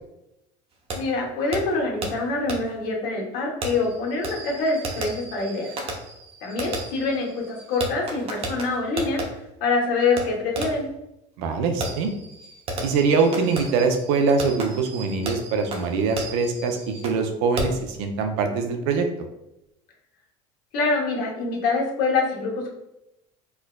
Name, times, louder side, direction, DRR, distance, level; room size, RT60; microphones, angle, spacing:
voice 1, 0.9-5.7 6.4-9.2 9.6-10.9 20.7-22.7, left 3 dB, 65° left, -1 dB, 1.0 m, -25 dB
Fireworks, 0.9-1.0 1.5-1.6 2.0-2.1 2.5-2.6 3.6-9.3 10.2-10.3 10.6-10.9 11.8-17.2 17.6-17.9, right 2 dB, 40° right, 0.7 m, -33 dB
voice 2, 11.4-12.1 12.8-19.1, right 4 dB, 80° right, 5 dB, 0.5 m, -23 dB
4.4 x 2.2 x 2.2 m, 0.86 s
supercardioid pair, 105°, 16 cm